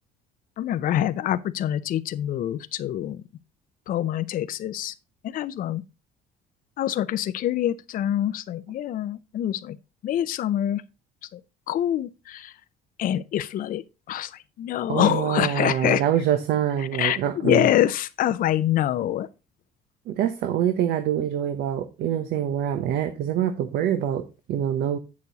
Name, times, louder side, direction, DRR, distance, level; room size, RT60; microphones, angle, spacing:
voice 1, 0.6-3.2 3.9-4.9 5.2-5.8 6.8-9.8 10.0-10.8 11.3-11.4 11.7-12.5 13.0-13.8 14.1-14.3 14.6-16.0 17.0-17.2 17.4-19.3, left 11 dB, 55° left, 0.5 m, -25 dB
voice 2, 14.9-17.7 20.1-25.0, right 10 dB, 75° right, 0.9 m, -25 dB
8.3 x 6.8 x 4.0 m
cardioid pair, 110°, 17 cm